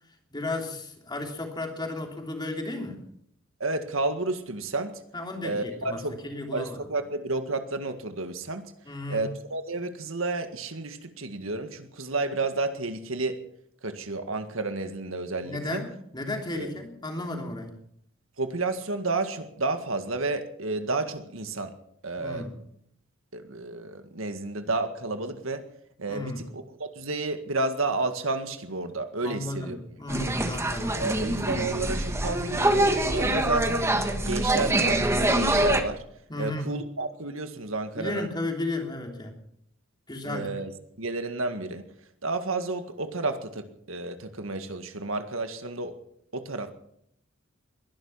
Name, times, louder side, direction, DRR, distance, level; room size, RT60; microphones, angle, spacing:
voice 1, 0.3-3.0 5.1-6.8 8.9-9.3 15.4-17.8 22.2-22.6 26.1-26.4 29.2-31.0 36.3-36.7 38.0-39.4 40.1-40.5, left 2 dB, 20° left, 3 dB, 3.1 m, -34 dB
voice 2, 3.6-5.0 5.4-6.2 6.5-8.7 9.1-13.4 13.8-15.8 16.5-16.7 18.4-21.7 22.0-22.5 23.3-25.6 26.0-29.8 30.1-30.3 30.9-33.9 34.2-36.0 36.4-38.3 40.2-40.7 41.0-41.8 42.2-45.9 46.3-46.7, right 3 dB, 75° right, 8 dB, 1.9 m, -31 dB
sound 1, 30.1-35.8, right 1 dB, 15° right, 1.4 m, -25 dB
21.5 x 11.5 x 5.7 m, 0.71 s
head